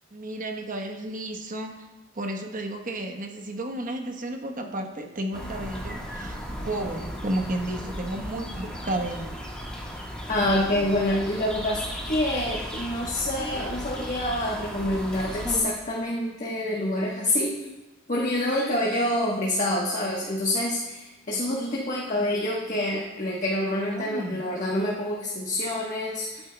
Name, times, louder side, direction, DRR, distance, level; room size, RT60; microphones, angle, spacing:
voice 1, 0.1-1.9 2.1-6.4 6.6-9.4 23.9-24.4, right 1 dB, 45° right, 3 dB, 1.1 m, -32 dB
sound 1, 5.3-15.6, equal, 5° left, 1.5 m, -36 dB
voice 2, 10.3-17.6 18.1-26.4, left 1 dB, 40° left, -4 dB, 1.2 m, -27 dB
12.5 x 8.8 x 2.3 m, 1.1 s
head